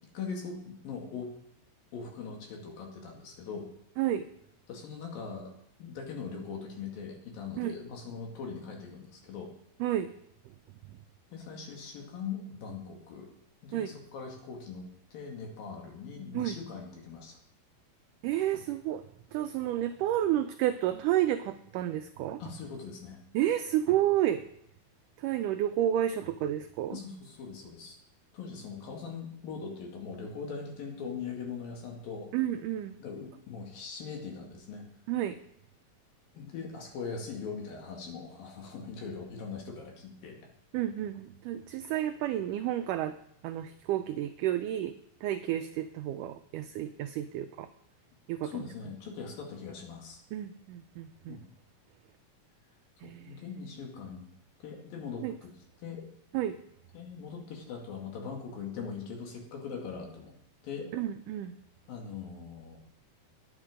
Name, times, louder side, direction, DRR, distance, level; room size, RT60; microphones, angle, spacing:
voice 1, 0.1-1.3 1.9-3.7 4.7-9.5 11.3-13.3 13.6-17.4 22.4-23.2 26.9-28.0 28.3-32.3 33.0-34.8 36.3-40.4 48.4-50.2 51.3-51.4 53.0-54.2 54.6-55.5 55.8-56.1 56.9-60.3 60.6-60.9 61.9-62.8, left 5 dB, 70° left, 1 dB, 3.8 m, -41 dB
voice 2, 18.2-19.0 19.3-22.4 23.3-24.4 25.2-27.0 32.3-33.0 35.1-35.4 40.7-43.1 43.4-44.9 45.2-47.7 48.3-48.6 50.3-51.4 53.0-53.4 55.2-55.3 56.3-56.6 60.9-61.5, right 12 dB, 85° right, 9 dB, 1.8 m, -30 dB
10.5 x 9.6 x 5.0 m, 0.73 s
omnidirectional pair, 4.2 m